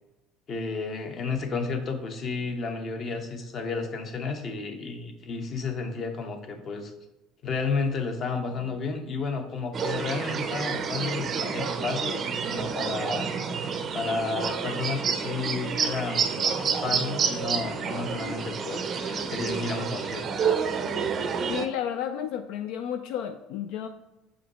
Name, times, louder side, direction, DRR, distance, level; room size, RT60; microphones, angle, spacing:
voice 1, 0.5-6.9 7.4-13.3 13.9-20.3, left 4 dB, 35° left, 6 dB, 0.9 m, -32 dB
sound 1, 9.7-21.7, right 6 dB, 30° right, 0.5 m, -29 dB
voice 2, 21.5-23.9, left 9 dB, 65° left, 8 dB, 0.3 m, -32 dB
6.9 x 5.0 x 3.0 m, 1.0 s
cardioid pair, 150°, 0 cm